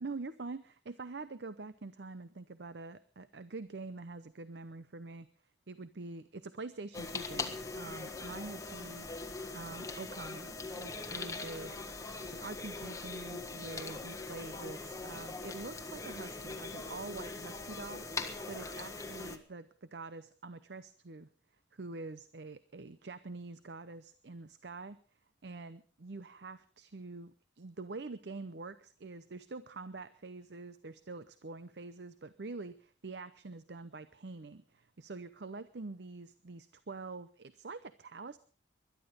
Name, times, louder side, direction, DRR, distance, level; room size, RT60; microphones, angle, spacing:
voice 1, 0.0-5.3 5.7-9.1 9.5-11.8 12.3-21.3 21.7-25.0 25.4-38.4, right 3 dB, 70° right, 14 dB, 0.7 m, -45 dB
sound 1, 6.9-19.4, left 3 dB, 20° left, 1.5 m, -41 dB
21.0 x 12.0 x 5.2 m, 0.42 s
head